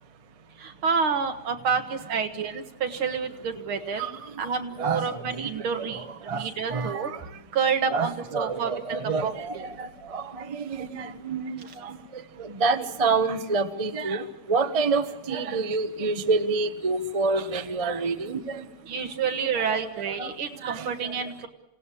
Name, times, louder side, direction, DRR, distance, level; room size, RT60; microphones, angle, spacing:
voice 1, 0.6-4.0 4.4-6.0 6.3-7.1 7.5-8.7 9.2-9.3 18.9-21.5, right 6 dB, 75° right, 6 dB, 2.5 m, -28 dB
voice 2, 4.0-4.3 4.8-5.5 5.9-6.4 6.7-7.2 7.9-18.6 19.6-19.9 20.2-20.3 20.6-21.1, right 4 dB, 25° right, 8 dB, 0.8 m, -28 dB
28.0 x 17.5 x 8.5 m, 0.95 s
omnidirectional pair, 2.3 m